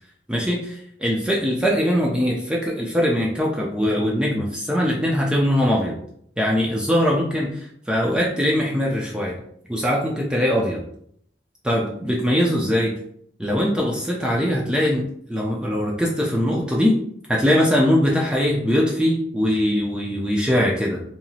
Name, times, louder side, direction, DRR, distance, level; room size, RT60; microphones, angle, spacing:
voice 1, 0.3-6.0 6.4-9.4 9.7-10.8 11.6-12.9 13.4-15.0 15.3-17.0 17.3-21.0, equal, 5° right, -3 dB, 0.3 m, -21 dB
2.8 x 2.4 x 2.6 m, 0.67 s
head